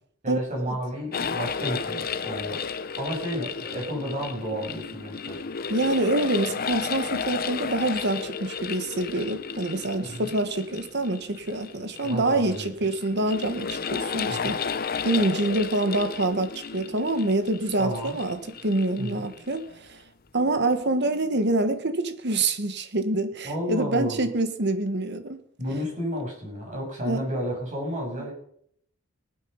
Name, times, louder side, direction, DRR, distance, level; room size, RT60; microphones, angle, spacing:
voice 1, 0.2-2.6 3.0-5.4 10.0-10.3 12.0-12.7 14.3-14.6 17.8-18.2 19.0-19.2 23.4-24.2 25.6-28.3, equal, 35° right, -1 dB, 7.2 m, -31 dB
sound 1, 1.1-19.7, left 6 dB, 45° left, 0.7 m, -33 dB
voice 2, 5.7-14.8 15.0-20.0 20.3-25.4 27.1-27.2, right 2 dB, 55° right, 9 dB, 1.5 m, -26 dB
19.0 x 9.2 x 5.5 m, 0.65 s
head